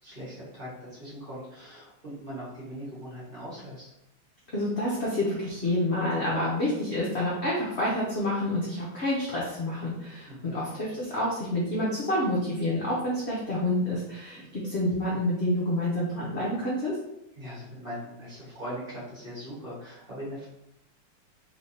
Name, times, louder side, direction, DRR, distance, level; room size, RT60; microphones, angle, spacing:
voice 1, 0.0-3.9 10.3-10.6 17.3-20.5, equal, 30° right, -9 dB, 1.4 m, -40 dB
voice 2, 4.5-17.0, left 1 dB, 55° left, -6 dB, 0.8 m, -28 dB
3.3 x 3.2 x 2.7 m, 0.81 s
omnidirectional pair, 2.0 m